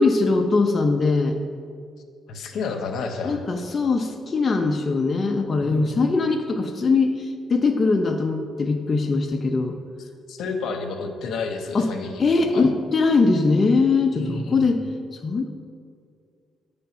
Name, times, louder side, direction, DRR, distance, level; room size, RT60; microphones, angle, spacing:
voice 1, 0.0-1.4 3.2-9.8 11.7-11.9 12.2-14.8 15.2-15.5, left 3 dB, 35° left, 3 dB, 0.5 m, -21 dB
voice 2, 2.3-3.4 5.6-6.0 10.3-12.2 12.5-12.7 14.1-14.7, left 4 dB, 75° left, 4 dB, 0.8 m, -31 dB
8.3 x 3.4 x 5.8 m, 2.2 s
cardioid pair, 90°, 0 cm